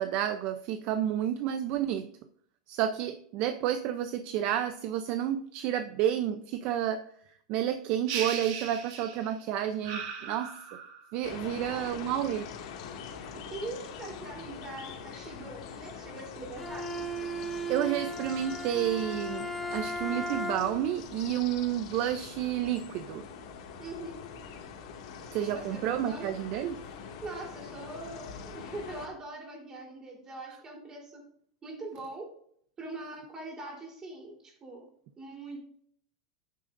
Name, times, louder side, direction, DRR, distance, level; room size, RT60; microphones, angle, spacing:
voice 1, 0.0-2.1 2.7-7.1 7.5-10.5 11.1-12.5 17.7-23.3 25.3-26.8, right 11 dB, 45° right, 9 dB, 0.6 m, -30 dB
sound 1, 8.1-9.4 9.8-11.1, right 7 dB, 60° right, 2.2 m, -37 dB
sound 2, 11.2-29.1, left 6 dB, 65° left, 2.1 m, -44 dB
voice 2, 11.4-11.9 13.1-16.9 23.8-24.2 25.4-26.3 27.2-31.2 31.6-32.3 32.8-35.6, right 2 dB, 20° right, -1 dB, 3.6 m, -42 dB
Bowed string instrument, 16.6-20.9, right 1 dB, 5° left, 0.8 m, -36 dB
10.5 x 9.2 x 2.6 m, 0.63 s
supercardioid pair, 155°, 3 cm